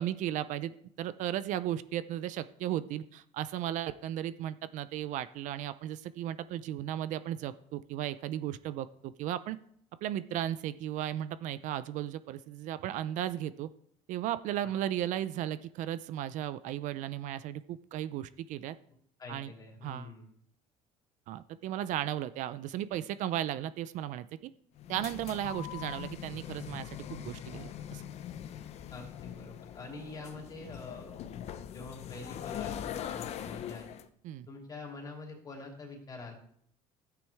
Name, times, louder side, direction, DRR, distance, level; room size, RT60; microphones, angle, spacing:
voice 1, 0.0-9.6 10.0-13.7 14.1-18.8 19.3-19.5 19.8-20.1 21.3-24.5 24.9-28.0 34.2-34.5, right 12 dB, 60° right, 14 dB, 0.5 m, -35 dB
voice 2, 19.2-20.3 28.9-31.1 31.7-34.0 34.5-36.3, left 3 dB, 25° left, 0 dB, 3.1 m, -46 dB
sound 1, 24.7-34.1, left 10 dB, 50° left, 0.7 m, -42 dB
13.0 x 9.3 x 3.5 m, 0.65 s
cardioid pair, 125°, 14 cm